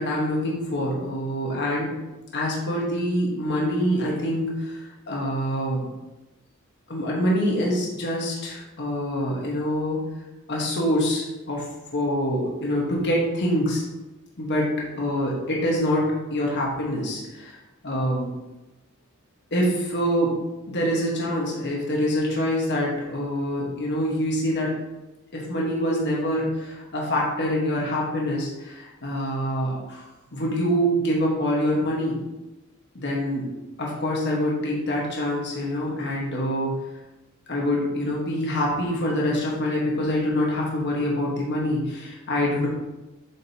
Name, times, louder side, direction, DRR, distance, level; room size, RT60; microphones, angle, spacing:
voice 1, 0.0-1.9 2.3-5.9 6.9-10.0 10.5-11.6 11.9-13.8 14.4-14.7 15.0-16.1 16.3-17.6 17.8-18.3 19.5-20.4 20.7-24.7 25.3-30.0 30.3-32.2 32.9-33.5 33.8-36.7 37.5-42.7, equal, 55° left, -3 dB, 1.4 m, -25 dB
7.6 x 5.0 x 2.8 m, 1.0 s
head